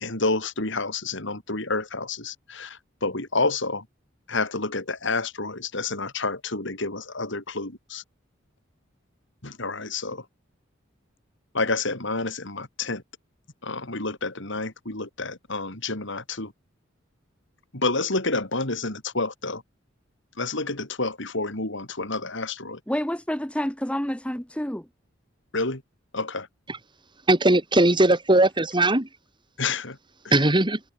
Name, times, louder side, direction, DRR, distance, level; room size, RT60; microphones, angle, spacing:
voice 1, 0.0-3.9 4.3-8.0 9.4-10.2 11.5-13.0 13.6-16.5 17.7-19.6 20.4-22.8 25.5-25.8 26.1-26.5 29.6-30.0, left 3 dB, 65° left, 4.6 m, -29 dB
voice 2, 22.9-24.9, equal, 5° left, 1.7 m, -28 dB
voice 3, 27.3-29.1 30.3-30.8, right 2 dB, 25° right, 3.0 m, -19 dB
head